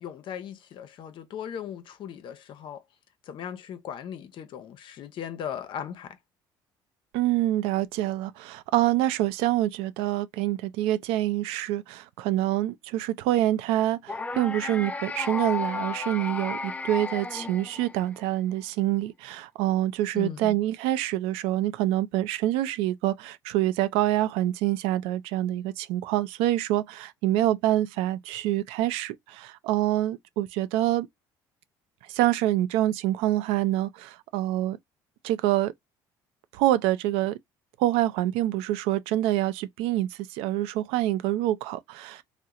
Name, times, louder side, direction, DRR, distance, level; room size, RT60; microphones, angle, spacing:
voice 1, 0.0-2.8 3.3-6.2 20.1-20.6, left 8 dB, 60° left, 0.6 m, -38 dB
voice 2, 7.1-31.1 32.1-34.8 35.2-35.7 36.5-37.4 37.8-42.2, right 14 dB, 80° right, 0.4 m, -26 dB
sound 1, 14.1-18.3, left 4 dB, 15° left, 0.4 m, -33 dB
2.8 x 2.0 x 3.6 m
supercardioid pair, 85°, 9 cm